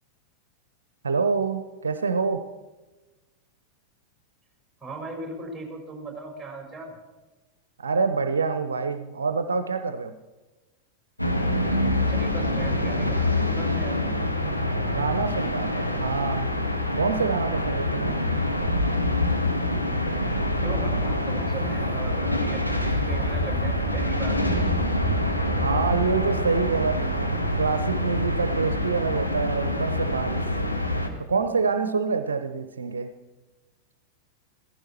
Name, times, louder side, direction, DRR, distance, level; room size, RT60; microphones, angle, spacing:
voice 1, 1.0-2.4 7.8-10.1 14.8-16.5 16.9-18.2 25.6-30.4 31.3-33.1, right 4 dB, 70° right, 10 dB, 0.7 m, -26 dB
voice 2, 4.8-7.0 12.0-14.0 20.6-24.5, right 3 dB, 5° right, 1 dB, 5.2 m, -38 dB
sound 1, 11.2-31.1, left 1 dB, 90° left, 1.6 m, -26 dB
sound 2, 22.4-28.3, right 1 dB, 10° left, 6.4 m, -31 dB
16.0 x 15.0 x 4.5 m, 1.2 s
figure-of-eight pair, 90°, 0 cm